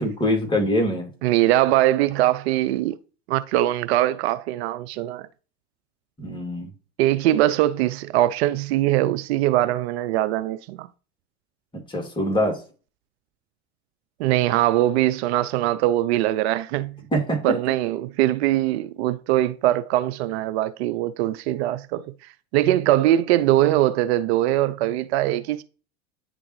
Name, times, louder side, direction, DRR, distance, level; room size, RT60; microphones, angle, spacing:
voice 1, 0.0-1.1 6.2-6.7 11.9-12.6 17.1-17.6, equal, 15° left, 2.4 m, -23 dB
voice 2, 1.2-3.0 3.3-5.3 7.0-10.9 14.2-17.0 17.4-25.6, right 14 dB, 65° right, 0.5 m, -22 dB
9.6 x 3.8 x 3.1 m
hypercardioid pair, 90°, 35 cm